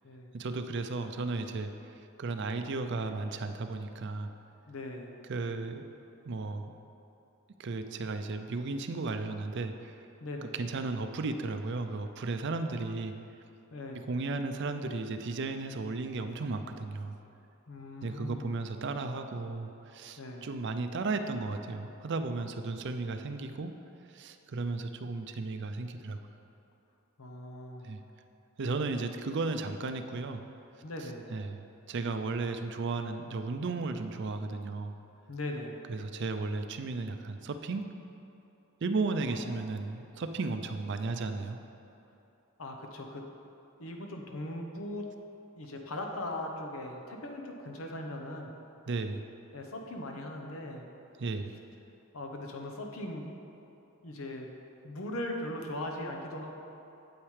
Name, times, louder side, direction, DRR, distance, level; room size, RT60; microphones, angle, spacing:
voice 1, 0.3-1.7 2.2-4.3 5.3-5.8 6.3-6.7 7.6-9.9 10.5-13.1 14.1-17.2 18.0-23.7 24.1-26.2 27.8-28.0 28.6-30.4 31.3-31.6 31.9-34.9 35.9-37.8 38.8-41.6 48.9-49.2 51.2-51.5, right 3 dB, 55° right, 8 dB, 0.4 m, -34 dB
voice 2, 4.7-5.1 10.2-10.5 13.7-14.0 17.7-18.5 20.2-20.5 27.2-27.9 30.8-31.2 35.3-35.8 39.3-39.6 42.6-43.2 43.8-45.0 45.6-48.5 49.5-50.9 52.1-53.3 54.0-54.5 54.8-56.5, left 1 dB, 80° left, 2 dB, 0.9 m, -39 dB
8.7 x 8.0 x 3.3 m, 2.9 s
head